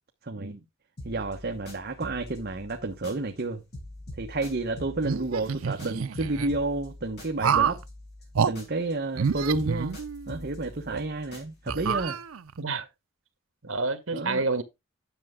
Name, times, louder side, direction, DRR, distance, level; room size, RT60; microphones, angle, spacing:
voice 1, 0.2-0.5 1.0-3.6 4.2-7.8 8.4-10.0 10.3-12.2 14.1-14.4, right 2 dB, 50° right, 1.0 m, -30 dB
sound 1, 1.0-3.5 3.7-9.0 9.2-12.0, left 1 dB, 55° left, 4.6 m, -44 dB
sound 2, 5.0-6.5 7.4-7.8 8.3-8.5 9.1-10.4 10.9-11.0 11.7-12.6, right 7 dB, 85° right, 0.5 m, -28 dB
voice 2, 13.6-14.6, right 3 dB, 65° right, 1.6 m, -29 dB
10.5 x 6.6 x 3.6 m
head